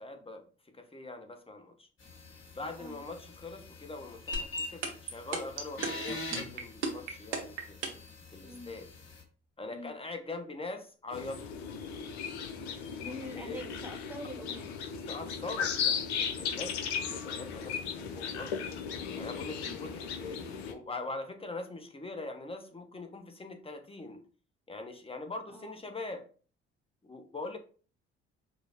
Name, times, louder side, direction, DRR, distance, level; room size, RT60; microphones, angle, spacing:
voice 1, 0.0-1.9 2.5-7.8 8.3-8.9 9.6-11.5 13.0-13.6 15.1-18.6 19.1-24.2 24.7-26.2 27.0-27.6, left 2 dB, 15° left, 6 dB, 0.9 m, -42 dB
sound 1, 2.0-9.2, left 2 dB, 40° left, 1.4 m, -43 dB
sound 2, 4.3-8.1, right 4 dB, 90° right, 0.7 m, -33 dB
voice 2, 8.4-8.7 9.7-10.0 13.0-14.7 19.6-19.9 25.5-25.7, equal, 5° right, 3 dB, 1.1 m, -45 dB
sound 3, 11.1-20.7, left 7 dB, 75° left, 0.6 m, -36 dB
5.3 x 2.0 x 2.9 m, 0.40 s
hypercardioid pair, 50°, 33 cm